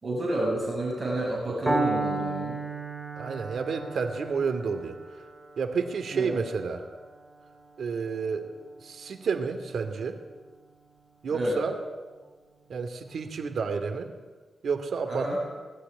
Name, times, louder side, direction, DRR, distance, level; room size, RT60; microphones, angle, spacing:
voice 1, 0.0-2.6 6.1-6.4 11.3-11.6 15.1-15.4, right 1 dB, 30° right, -3 dB, 7.4 m, -30 dB
Piano, 1.7-9.6, right 2 dB, 15° right, 3.4 m, -34 dB
voice 2, 3.2-5.0 5.6-6.9 7.8-8.5 8.8-10.2 11.2-11.8 12.7-14.1 14.6-15.4, right 5 dB, 70° right, 7 dB, 2.5 m, -30 dB
20.5 x 15.5 x 9.8 m, 1.3 s
wide cardioid pair, 130°, 0 cm